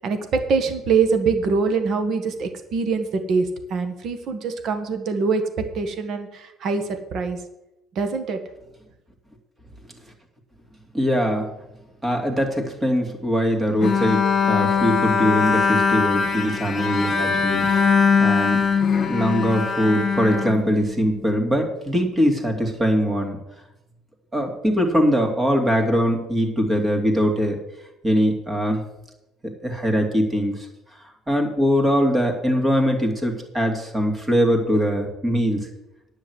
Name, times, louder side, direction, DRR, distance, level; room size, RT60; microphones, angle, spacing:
voice 1, 0.0-7.4 8.0-8.4, right 4 dB, 55° right, 7 dB, 1.8 m, -24 dB
voice 2, 10.9-11.5 12.0-18.6 19.0-23.4 24.3-27.6 28.0-28.8 29.6-30.5 31.3-35.7, equal, 15° right, 2 dB, 2.6 m, -22 dB
Bowed string instrument, 13.8-21.2, left 5 dB, 40° left, 1.9 m, -21 dB
10.5 x 6.6 x 8.2 m, 0.92 s
cardioid pair, 115°, 0 cm